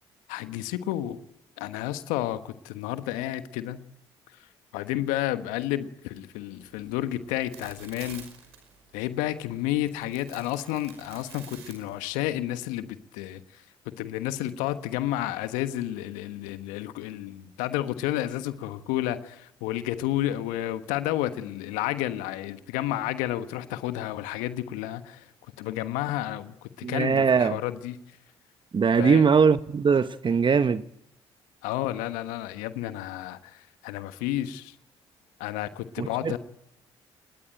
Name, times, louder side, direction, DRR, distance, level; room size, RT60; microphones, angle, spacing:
voice 1, 0.3-1.2 1.6-3.8 4.7-8.2 8.9-13.6 14.0-25.3 25.6-28.0 29.0-29.2 31.6-34.7 35.4-36.4, left 14 dB, 75° left, 1.3 m, -31 dB
sound 1, 6.5-12.4, right 7 dB, 85° right, 5.4 m, -50 dB
voice 2, 26.8-27.6 28.7-30.8 36.0-36.4, right 6 dB, 35° right, 1.1 m, -21 dB
29.5 x 20.0 x 9.1 m
hypercardioid pair, 50°, 13 cm